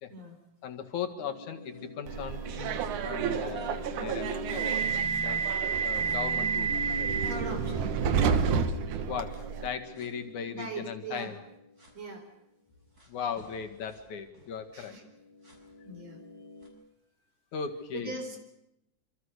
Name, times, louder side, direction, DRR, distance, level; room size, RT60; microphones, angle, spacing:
voice 1, 0.6-4.7 5.2-5.4 5.8-7.0 9.1-11.3 13.1-14.9 17.5-18.1, left 7 dB, 80° left, 6 dB, 3.4 m, -38 dB
sound 1, 1.2-5.5 6.0-11.9 13.0-13.1 13.4-16.7, left 1 dB, 30° right, 6.6 m, -43 dB
Subway metro underground, 2.1-9.7, right 6 dB, 80° right, 2.7 m, -29 dB
voice 2, 7.2-7.9 10.4-11.3 11.9-12.3 14.7-15.0 15.9-16.5 17.9-18.4, right 3 dB, 55° right, 6 dB, 5.4 m, -40 dB
26.5 x 26.5 x 6.6 m, 0.86 s
omnidirectional pair, 3.4 m